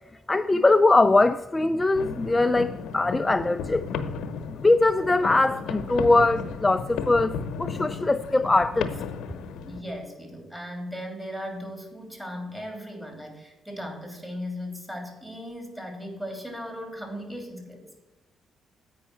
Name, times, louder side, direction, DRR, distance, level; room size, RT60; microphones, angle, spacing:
voice 1, 0.3-3.9 4.6-8.9, left 2 dB, 15° left, 0.3 m, -21 dB
sound 1, 1.9-9.8, left 6 dB, 85° left, 0.8 m, -34 dB
voice 2, 9.6-17.9, equal, 10° right, 3.1 m, -37 dB
8.6 x 5.4 x 7.7 m
cardioid pair, 90°, 0 cm